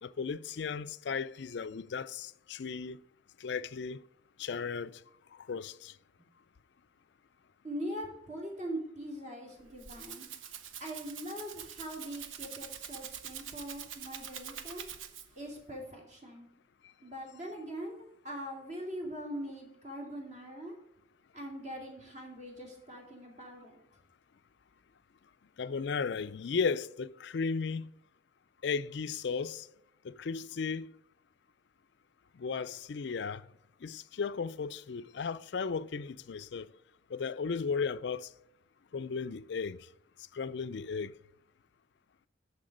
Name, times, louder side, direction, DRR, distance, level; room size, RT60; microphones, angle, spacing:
voice 1, 0.0-3.0 3.4-4.0 4.4-5.0 5.5-5.9 25.6-27.9 28.6-29.7 30.0-30.9 32.4-33.4 33.8-36.7 37.1-38.3 38.9-39.8 40.3-41.2, left 5 dB, 65° left, 0.4 m, -35 dB
voice 2, 7.6-10.3 10.8-14.8 15.4-16.5 17.0-20.8 21.3-23.8, equal, 40° right, 2.5 m, -42 dB
Rattle (instrument), 9.5-15.5, right 8 dB, 85° right, 0.8 m, -45 dB
7.7 x 6.7 x 5.1 m
head